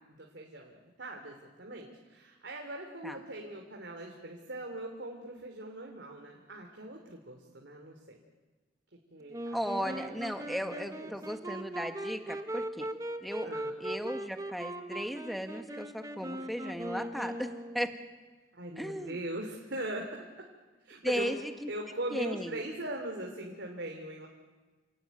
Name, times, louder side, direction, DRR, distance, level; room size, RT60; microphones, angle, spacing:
voice 1, 0.1-8.2 9.1-11.1 13.4-13.8 18.5-20.3 20.8-21.4 21.7-24.3, right 1 dB, 85° right, 1 dB, 3.1 m, -41 dB
Wind instrument woodwind instrument, 9.3-18.1, right 1 dB, 20° right, 1.4 m, -39 dB
voice 2, 9.5-12.9 13.2-13.5 13.8-17.5 17.7-17.9 18.8-19.2 21.0-21.7 22.1-22.6, equal, ahead, 5 dB, 1.8 m, -36 dB
29.0 x 18.0 x 9.3 m, 1.3 s
head